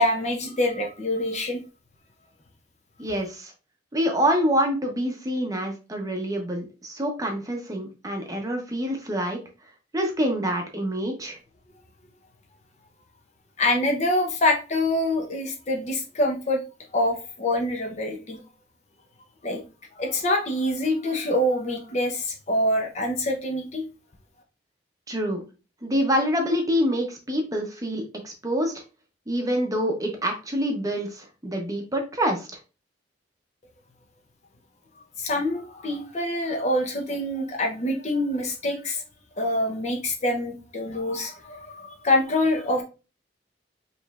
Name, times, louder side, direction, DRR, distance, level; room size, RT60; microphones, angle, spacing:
voice 1, 0.0-1.6 13.6-16.6 16.9-18.4 19.4-19.6 20.0-23.8 35.2-39.0 39.4-42.8, left 1 dB, 40° left, 3 dB, 0.8 m, -25 dB
voice 2, 3.0-3.5 3.9-9.4 9.9-11.4 25.1-25.4 25.8-28.7 29.3-32.5, equal, 20° right, 2 dB, 0.8 m, -26 dB
5.2 x 3.1 x 2.4 m, 0.32 s
head